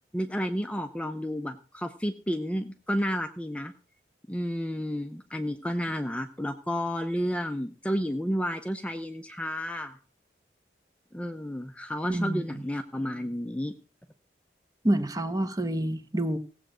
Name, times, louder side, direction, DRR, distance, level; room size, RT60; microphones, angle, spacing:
voice 1, 0.1-3.7 4.3-10.0 11.1-13.7, equal, 5° left, 0.7 m, -31 dB
voice 2, 12.1-12.6 14.8-16.4, right 1 dB, 20° right, 1.1 m, -28 dB
16.5 x 7.9 x 6.2 m
head